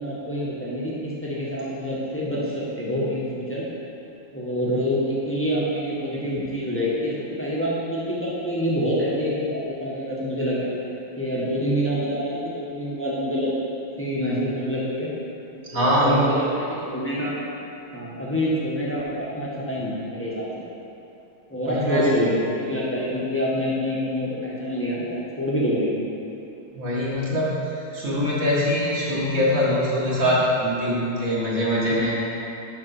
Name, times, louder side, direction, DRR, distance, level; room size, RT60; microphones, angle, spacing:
voice 1, 0.0-3.7 4.3-10.8 11.2-13.5 14.0-15.1 15.7-17.4 17.9-20.5 21.5-25.9 31.9-32.0, equal, 10° left, -7 dB, 1.1 m, -26 dB
voice 2, 15.6-16.2 21.7-22.1 26.7-27.6 27.9-32.2, equal, 45° right, -6 dB, 1.9 m, -23 dB
8.6 x 6.1 x 4.3 m, 2.8 s
omnidirectional pair, 2.2 m